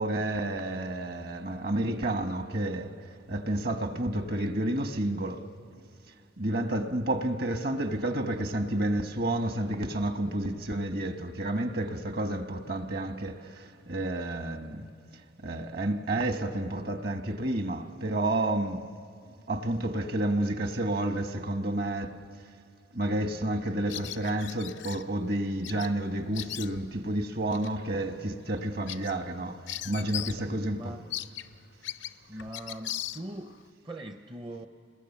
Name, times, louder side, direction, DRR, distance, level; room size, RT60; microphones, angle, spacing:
voice 1, 0.0-2.9 3.3-5.5 6.4-14.9 15.4-18.9 19.5-22.2 22.9-29.6 29.8-30.9, right 1 dB, 50° right, 1.2 m, -30 dB
Bird vocalization bird call bird song, 23.9-25.0 25.6-25.9 26.2-27.0 27.5-27.7 28.1-28.2 28.6-30.5 30.7-30.8 31.1-33.6, left 13 dB, 65° left, 0.5 m, -38 dB
voice 2, 30.1-31.1 32.3-34.7, right 1 dB, 25° right, 0.6 m, -42 dB
29.0 x 21.0 x 7.2 m
head